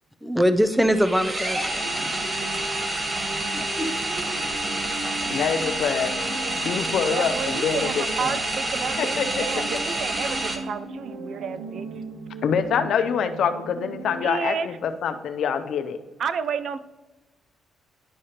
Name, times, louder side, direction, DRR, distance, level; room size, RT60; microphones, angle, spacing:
voice 1, 0.2-1.9 3.5-3.9, equal, ahead, 10 dB, 0.5 m, -22 dB
sound 1, 0.8-10.6, right 2 dB, 25° right, 1.1 m, -28 dB
sound 2, 1.8-14.2, right 3 dB, 85° right, 0.9 m, -38 dB
voice 2, 5.3-6.1 6.6-8.0 9.0-9.4 12.4-16.0, left 7 dB, 70° left, 9 dB, 0.6 m, -25 dB
voice 3, 7.0-11.9 14.2-14.7 16.2-16.8, right 6 dB, 60° right, 13 dB, 0.4 m, -31 dB
11.0 x 4.9 x 2.9 m, 1.1 s
cardioid pair, 90°, 0 cm